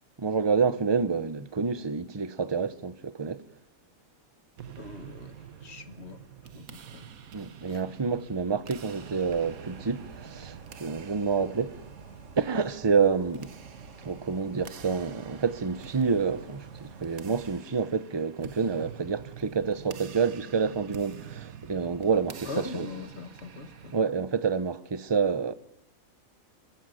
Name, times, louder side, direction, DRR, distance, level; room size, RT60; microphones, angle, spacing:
voice 1, 0.2-3.4 7.3-11.8 12.4-13.5 14.0-22.5 22.7-22.8 23.9-25.5, right 5 dB, 20° right, 0.8 m, -28 dB
sound 1, 4.6-24.0, right 8 dB, 75° right, 1.5 m, -47 dB
voice 2, 4.8-7.2 7.7-7.9 22.4-24.0, left 4 dB, 50° left, 1.9 m, -41 dB
sound 2, 8.9-17.6, right 4 dB, 55° right, 2.2 m, -48 dB
28.0 x 14.5 x 9.2 m
omnidirectional pair, 1.5 m